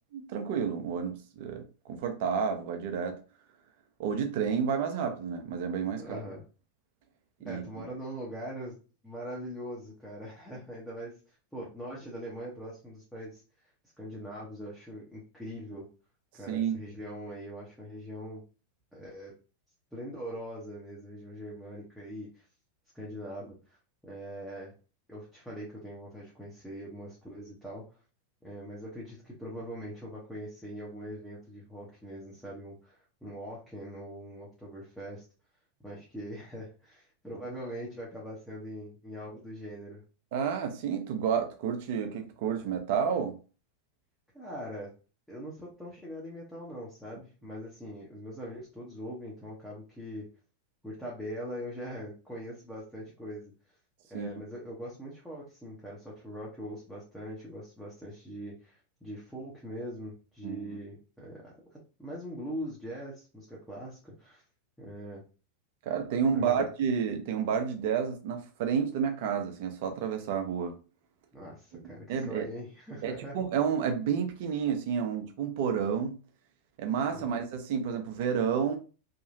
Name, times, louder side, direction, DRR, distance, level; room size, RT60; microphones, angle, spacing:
voice 1, 0.1-3.2 4.0-6.2 7.4-7.6 16.5-16.8 40.3-43.4 54.1-54.3 60.4-60.8 65.9-70.7 71.7-72.5 73.0-76.2 76.8-78.8, right 7 dB, 55° right, 0.6 m, -30 dB
voice 2, 6.0-6.4 7.4-8.8 9.0-11.1 11.5-13.4 14.0-15.8 16.4-18.4 18.9-19.3 19.9-22.4 22.9-23.8 24.0-24.8 25.1-27.8 28.4-35.2 35.8-40.0 44.3-44.9 45.3-50.3 50.8-53.5 54.1-64.4 64.8-65.2 66.3-66.6 71.3-73.4 77.1-77.4, equal, 5° left, 1.0 m, -42 dB
2.9 x 2.3 x 2.6 m
figure-of-eight pair, 90°, 0 cm